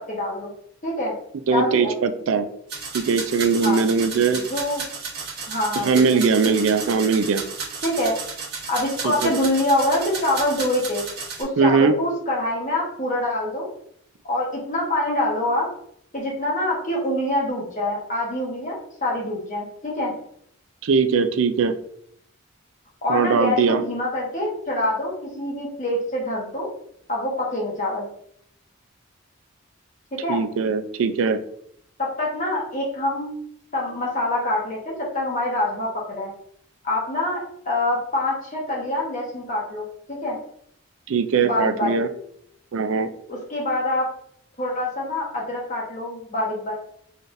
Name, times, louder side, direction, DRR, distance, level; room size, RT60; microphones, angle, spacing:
voice 1, 0.1-0.5 0.8-1.2 1.5-1.9 3.6-3.8 4.5-4.9 5.5-6.5 7.8-8.1 8.7-11.0 11.4-13.7 14.2-15.7 16.1-20.1 23.0-26.7 27.1-28.1 30.1-30.4 32.0-33.3 33.7-36.3 36.8-40.4 41.4-42.0 43.3-44.1 44.6-46.7, left 1 dB, 35° left, -3 dB, 1.1 m, -25 dB
voice 2, 1.5-2.5 2.9-4.4 5.8-7.4 9.0-9.4 11.6-11.9 20.8-21.7 23.1-23.8 30.3-31.4 41.1-42.1 42.7-43.1, right 5 dB, 70° right, 10 dB, 0.4 m, -20 dB
sound 1, 2.7-11.4, right 5 dB, 50° right, 1.4 m, -33 dB
3.9 x 3.4 x 2.6 m, 0.69 s
head